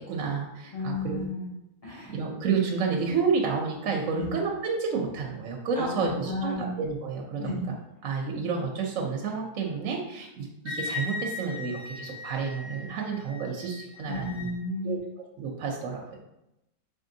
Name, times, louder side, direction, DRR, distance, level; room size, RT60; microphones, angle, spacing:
voice 1, 0.0-1.2 2.1-7.6 8.0-14.4 14.8-15.0 15.4-16.2, right 5 dB, 65° right, 0 dB, 0.9 m, -30 dB
voice 2, 0.7-1.5 1.8-2.1 4.2-4.3 5.7-6.7 7.4-7.6 14.1-15.0, left 2 dB, 30° left, -9 dB, 0.7 m, -33 dB
Wind instrument woodwind instrument, 10.7-14.5, left 3 dB, 10° left, 1.1 m, -38 dB
4.0 x 3.6 x 2.6 m, 0.90 s
omnidirectional pair, 1.6 m